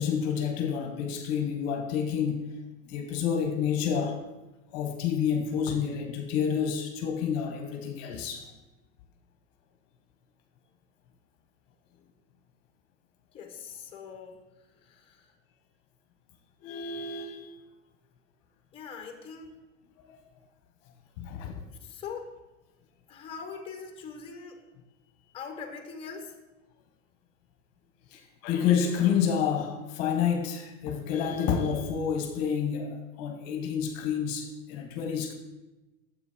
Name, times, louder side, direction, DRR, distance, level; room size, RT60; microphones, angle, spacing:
voice 1, 0.0-2.6 2.8-4.2 4.7-8.5 16.6-17.5 20.1-20.2 21.2-21.6 28.1-35.3, left 7 dB, 40° left, 5 dB, 1.2 m, -29 dB
voice 2, 13.3-14.4 14.8-15.3 18.7-19.6 21.8-22.4 23.1-24.6 25.3-26.3, left 5 dB, 15° left, 5 dB, 1.2 m, -42 dB
9.8 x 7.6 x 5.0 m, 1.1 s
supercardioid pair, 155°, 38 cm